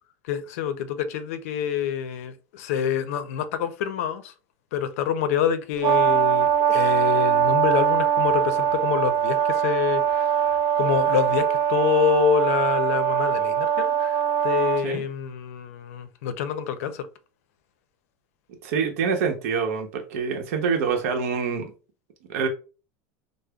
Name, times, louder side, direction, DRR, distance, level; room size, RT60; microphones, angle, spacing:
voice 1, 0.2-4.3 4.7-17.1, left 8 dB, 80° left, 0.5 m, -27 dB
Brass instrument, 5.8-14.8, right 8 dB, 35° right, 0.5 m, -22 dB
voice 2, 18.6-21.7 22.3-22.5, right 5 dB, 80° right, 0.8 m, -26 dB
5.0 x 2.0 x 2.3 m
supercardioid pair, 160°, 8 cm